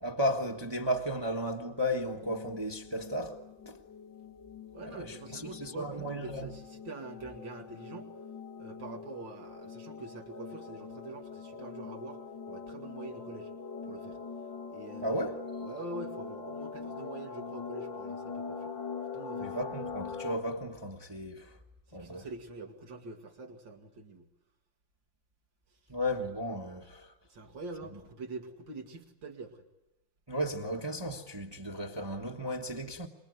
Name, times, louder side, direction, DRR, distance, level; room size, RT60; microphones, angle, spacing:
voice 1, 0.0-3.8 4.9-6.5 15.0-15.4 19.4-21.6 21.9-22.3 25.9-27.1 27.9-28.0 30.3-33.1, equal, 15° right, 1.3 m, -34 dB
sound 1, 2.0-20.4, left 5 dB, 90° left, 2.7 m, -43 dB
voice 2, 4.7-8.1 8.6-12.2 12.5-13.5 13.9-14.2 14.7-15.4 15.6-18.7 19.1-19.5 21.9-24.3 27.3-29.6, right 3 dB, 90° right, 3.0 m, -45 dB
25.5 x 22.0 x 9.5 m
omnidirectional pair, 2.0 m